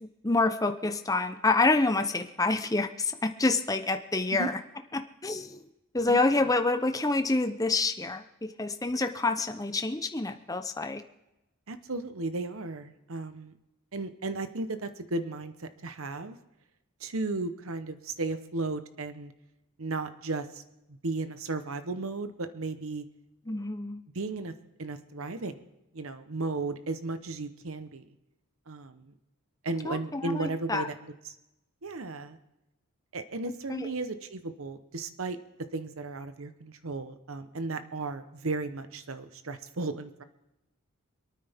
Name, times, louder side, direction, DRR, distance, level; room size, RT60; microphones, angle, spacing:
voice 1, 0.0-4.6 4.9-5.7 5.9-11.0 23.5-24.0 29.8-30.9 33.7-33.9, left 3 dB, 15° left, 7 dB, 0.8 m, -27 dB
voice 2, 11.7-13.5 13.9-16.4 17.0-19.3 19.8-20.6 20.9-23.0 24.1-24.5 24.8-25.6 25.9-28.1 28.7-29.1 29.6-31.3 31.8-32.4 33.1-35.4 35.7-40.2, right 3 dB, 65° right, 10 dB, 0.9 m, -35 dB
27.0 x 9.4 x 3.6 m, 0.94 s
head